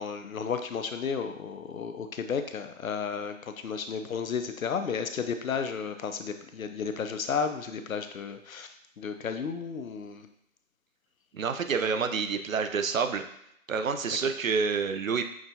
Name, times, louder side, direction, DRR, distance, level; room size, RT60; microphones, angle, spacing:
voice 1, 0.0-10.3, left 6 dB, 70° left, 8 dB, 0.5 m, -33 dB
voice 2, 11.3-13.2 13.7-15.2, right 5 dB, 70° right, 8 dB, 0.5 m, -28 dB
5.9 x 2.3 x 2.7 m, 0.74 s
figure-of-eight pair, 165°, 43 cm